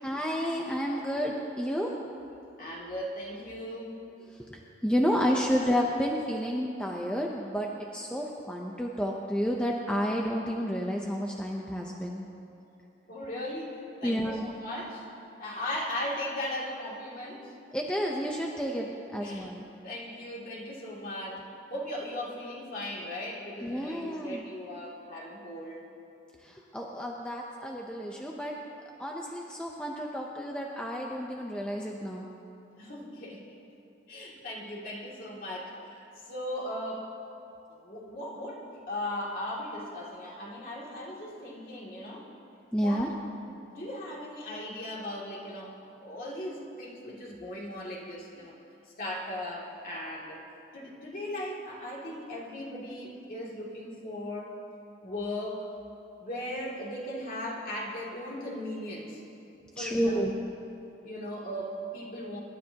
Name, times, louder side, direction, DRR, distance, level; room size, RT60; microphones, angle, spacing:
voice 1, 0.0-1.9 4.5-12.3 14.0-14.5 17.7-19.6 23.6-24.4 26.4-28.5 29.0-32.3 42.7-43.1 59.8-60.4, equal, 5° left, -1 dB, 0.7 m, -30 dB
voice 2, 2.6-4.0 5.1-5.7 13.1-15.1 15.4-17.5 19.2-19.5 19.8-25.8 32.8-33.5 34.1-37.1 37.8-42.3 42.7-43.1 43.7-48.5 49.0-50.4 50.7-54.5 55.0-55.7 56.2-59.2 59.8-60.3 61.0-62.4, left 1 dB, 45° left, -4 dB, 2.6 m, -38 dB
26.0 x 12.0 x 2.9 m, 2.7 s
head